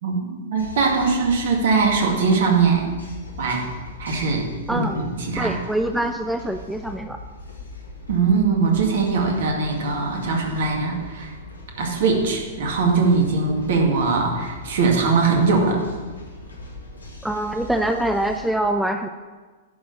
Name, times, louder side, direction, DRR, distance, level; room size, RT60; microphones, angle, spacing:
voice 1, 0.0-2.9 3.4-3.7 4.0-5.6 8.1-11.3 11.8-15.8, right 4 dB, 55° right, 1 dB, 2.2 m, -21 dB
sound 1, 0.6-18.5, left 2 dB, 75° left, 1.9 m, -40 dB
voice 2, 5.4-7.2 17.2-19.1, right 1 dB, 5° right, 6 dB, 0.5 m, -24 dB
11.0 x 6.4 x 7.2 m, 1.4 s
figure-of-eight pair, 100°, 0 cm